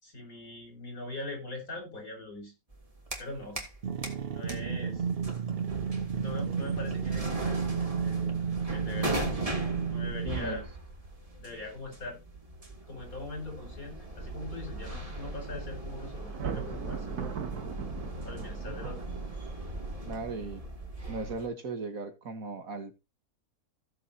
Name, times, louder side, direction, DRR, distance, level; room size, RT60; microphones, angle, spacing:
voice 1, 0.0-2.5 3.2-3.7 4.3-5.0 6.2-8.2 8.7-9.3 9.8-10.6 11.4-12.2 12.9-17.3 18.2-19.0, left 2 dB, 70° left, 5.5 m, -41 dB
sound 1, 2.7-3.8 4.0-21.5, right 1 dB, 20° right, 2.9 m, -39 dB
sound 2, 3.8-10.6, right 6 dB, 45° right, 0.9 m, -32 dB
voice 2, 10.2-10.6 20.1-20.6 21.1-23.0, right 3 dB, 65° right, 2.0 m, -37 dB
Thunder, 16.3-19.6, right 7 dB, 90° right, 1.7 m, -39 dB
17.0 x 7.3 x 2.8 m
omnidirectional pair, 1.6 m